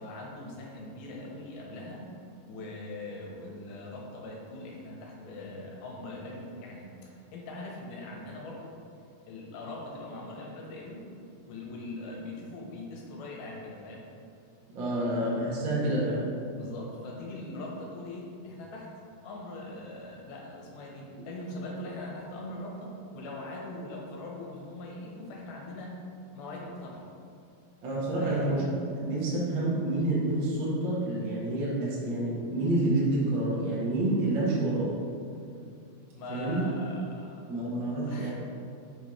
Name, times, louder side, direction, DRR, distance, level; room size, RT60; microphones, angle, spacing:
voice 1, 0.0-2.0 2.5-8.7 9.3-11.0 11.5-14.0 16.5-18.9 19.2-26.0 26.3-27.1 28.2-28.5 36.1-37.4 38.1-38.3, left 2 dB, 85° left, -2 dB, 2.9 m, -41 dB
voice 2, 14.7-16.3 27.8-28.7 28.9-34.9 36.3-36.7 37.5-38.3, right 1 dB, 50° right, -7 dB, 1.4 m, -28 dB
6.2 x 4.7 x 4.9 m, 2.4 s
omnidirectional pair, 4.3 m